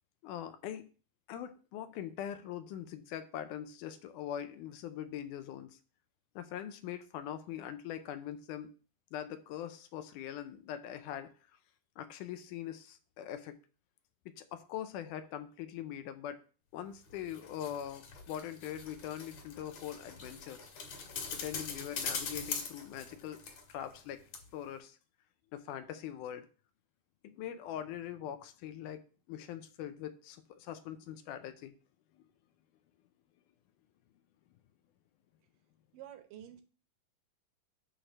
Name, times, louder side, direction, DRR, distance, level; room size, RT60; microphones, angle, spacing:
voice 1, 0.2-0.9 1.3-5.8 6.4-8.7 9.1-11.3 12.0-13.6 14.3-16.4 16.7-20.6 21.3-23.4 23.7-25.0 25.5-26.5 27.2-29.0 29.3-31.7 32.1-32.3, left 10 dB, 80° left, 10 dB, 2.0 m, -42 dB
sound 1, 17.1-24.1 24.3-24.4, left 5 dB, 60° left, 2.4 m, -42 dB
voice 2, 35.9-36.6, right 11 dB, 75° right, 7 dB, 2.4 m, -49 dB
8.9 x 3.3 x 6.0 m, 0.37 s
omnidirectional pair, 3.9 m